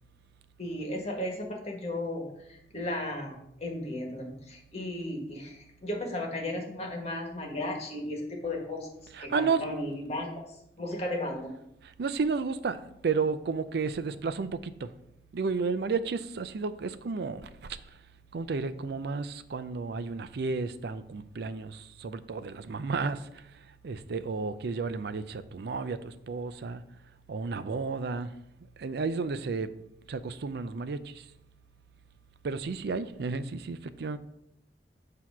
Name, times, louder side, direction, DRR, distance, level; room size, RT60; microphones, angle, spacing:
voice 1, 0.6-8.9 9.2-10.4 10.8-11.5, left 1 dB, 35° left, 1.4 m, -35 dB
voice 2, 9.1-9.6 12.0-14.9 15.3-17.8 18.3-23.4 23.8-26.8 27.3-28.3 28.8-29.7 30.1-31.2 32.4-34.2, right 4 dB, 65° right, 0.4 m, -32 dB
7.8 x 2.9 x 6.0 m
head